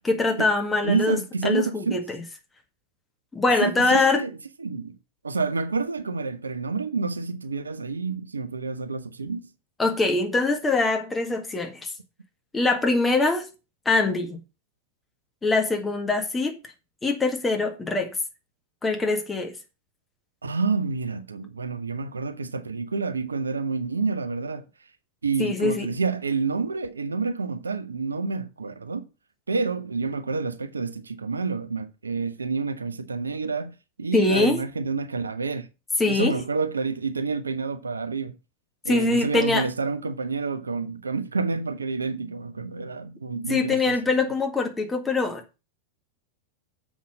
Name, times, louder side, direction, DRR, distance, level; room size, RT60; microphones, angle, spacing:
voice 1, 0.0-1.2 1.4-2.2 3.3-4.2 9.8-11.9 12.5-13.5 13.9-14.4 15.4-16.6 17.0-18.2 18.8-19.5 25.4-25.9 34.1-34.6 36.0-36.4 38.9-39.7 43.5-45.4, left 3 dB, 15° left, 1.8 m, -23 dB
voice 2, 0.8-2.0 3.6-5.0 5.2-9.4 20.4-24.6 25.2-29.1 29.5-33.7 34.0-35.7 36.1-38.4 38.8-44.2, right 4 dB, 75° right, 0.7 m, -28 dB
7.2 x 5.7 x 6.2 m
figure-of-eight pair, 90°, 0 cm